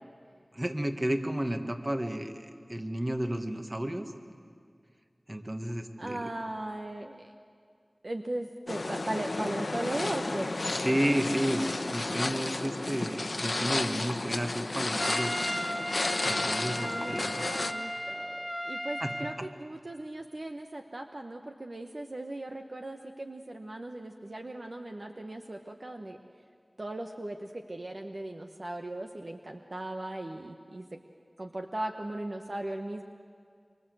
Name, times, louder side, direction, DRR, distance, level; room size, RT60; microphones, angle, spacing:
voice 1, 0.5-4.1 5.3-6.3 10.8-15.4 16.2-17.4 19.0-19.3, right 1 dB, 30° right, 6 dB, 1.8 m, -32 dB
voice 2, 6.0-7.2 8.0-10.5 16.7-26.2 26.8-30.9 31.4-33.0, right 1 dB, 55° right, 4 dB, 1.2 m, -38 dB
sound 1, 8.7-17.7, left 2 dB, 70° left, 1.1 m, -32 dB
Trumpet, 15.0-19.4, equal, 5° left, 1.0 m, -35 dB
25.0 x 24.5 x 7.9 m, 2.2 s
wide cardioid pair, 50°, 0 cm